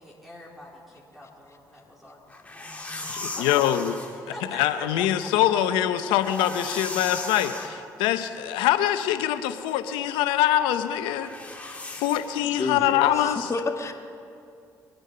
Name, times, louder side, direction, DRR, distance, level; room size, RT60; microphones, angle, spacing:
voice 1, 0.0-2.4 3.4-5.3, left 1 dB, ahead, -4 dB, 3.7 m, -43 dB
sound 1, 2.3-4.2 6.0-7.7 11.2-12.4, left 2 dB, 15° left, 2.4 m, -36 dB
voice 2, 3.1-3.9 4.5-11.3 12.0-13.5, left 12 dB, 90° left, 10 dB, 0.8 m, -24 dB
voice 3, 12.6-13.9, left 4 dB, 40° left, 5 dB, 1.6 m, -30 dB
24.0 x 9.0 x 5.5 m, 2.5 s
supercardioid pair, 65°, 8 cm